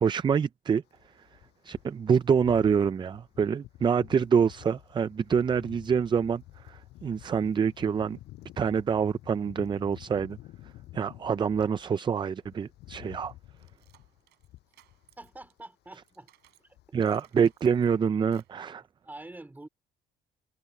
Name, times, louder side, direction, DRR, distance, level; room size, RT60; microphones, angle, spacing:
voice 1, 0.0-0.8 1.6-8.2 8.6-10.4 10.9-13.3 16.9-18.8, right 6 dB, 25° right, 0.5 m, -26 dB
sound 1, 0.9-11.8 12.2-15.6 15.9-16.1 16.4-17.3 17.5-17.7, left 16 dB, 80° left, 7.2 m, -50 dB
sound 2, 13.1-16.7 17.0-18.6, right 16 dB, 80° right, 5.7 m, -64 dB
voice 2, 15.2-16.3 16.6-16.7 19.0-19.7, right 2 dB, 10° right, 3.9 m, -46 dB
cardioid pair, 110°, 17 cm